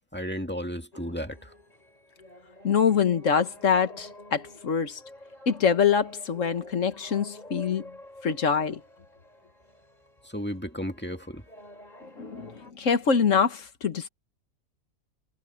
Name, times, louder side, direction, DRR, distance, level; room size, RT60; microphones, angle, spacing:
voice 1, 0.1-1.5 10.2-11.4, equal, 10° left, 1.9 m, -34 dB
sound 1, 0.9-12.7, left 1 dB, 30° left, 5.6 m, -49 dB
voice 2, 2.6-5.0 5.5-7.9 8.2-8.8 12.2-14.1, left 6 dB, 65° left, 1.8 m, -24 dB
omnidirectional pair, 1.4 m